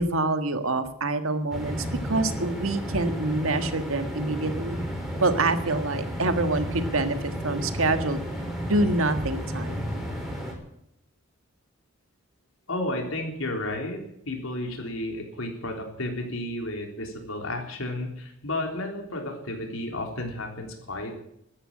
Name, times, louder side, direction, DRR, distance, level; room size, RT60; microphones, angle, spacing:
voice 1, 0.0-1.8 2.0-4.8 5.2-8.2 8.6-9.8, right 2 dB, 80° right, 9 dB, 1.6 m, -26 dB
sound 1, 1.5-10.5, equal, ahead, 3.8 m, -33 dB
voice 2, 12.7-21.1, left 1 dB, 75° left, 3 dB, 3.6 m, -32 dB
13.0 x 11.5 x 8.6 m, 0.77 s
head